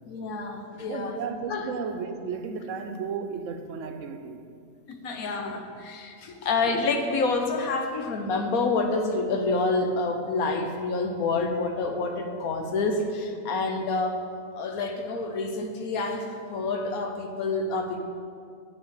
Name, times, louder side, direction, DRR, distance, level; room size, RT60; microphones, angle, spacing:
voice 1, 0.1-1.2 1.5-1.7 4.9-14.2 14.5-18.0, left 3 dB, 85° left, 5 dB, 1.4 m, -28 dB
voice 2, 0.9-4.4, right 5 dB, 65° right, 7 dB, 1.0 m, -34 dB
8.4 x 6.1 x 6.5 m, 2.2 s
omnidirectional pair, 1.5 m